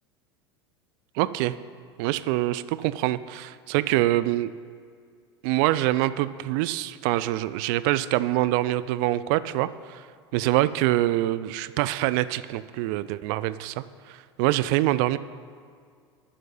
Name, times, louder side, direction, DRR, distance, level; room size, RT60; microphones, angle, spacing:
voice 1, 1.1-1.5 2.0-4.5 5.4-10.1 10.3-15.2, right 16 dB, 45° right, 14 dB, 0.4 m, -25 dB
9.7 x 6.4 x 7.9 m, 2.1 s
figure-of-eight pair, 80°, 14 cm